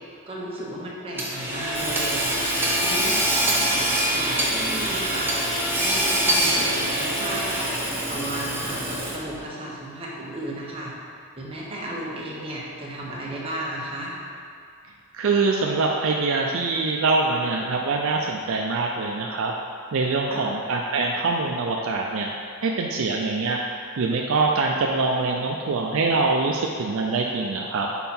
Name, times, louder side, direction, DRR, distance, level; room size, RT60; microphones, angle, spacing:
voice 1, 0.3-2.2 2.8-5.3 5.8-7.4 8.1-10.9 11.4-14.1 20.3-20.5, right 1 dB, 25° right, -5 dB, 1.1 m, -34 dB
Hammer / Sawing, 1.2-9.4, right 1 dB, 10° right, 0.8 m, -24 dB
voice 2, 15.1-19.5 19.9-22.3 22.6-23.6 24.0-27.9, right 3 dB, 65° right, 0 dB, 0.4 m, -24 dB
5.6 x 4.5 x 4.3 m, 2.3 s
head